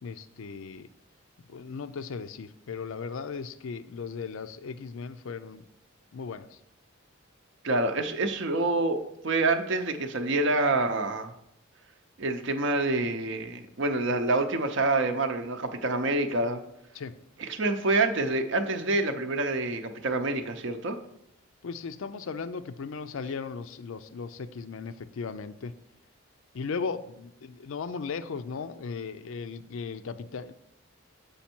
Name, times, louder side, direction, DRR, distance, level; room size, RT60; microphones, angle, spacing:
voice 1, 0.0-0.9 1.5-5.6 6.1-6.6 16.9-17.2 21.6-25.7 26.5-30.5, left 5 dB, 75° left, 12 dB, 0.4 m, -37 dB
voice 2, 7.6-11.3 12.2-16.6 17.4-21.0, right 2 dB, 60° right, 7 dB, 0.6 m, -27 dB
7.1 x 5.3 x 4.4 m, 0.79 s
head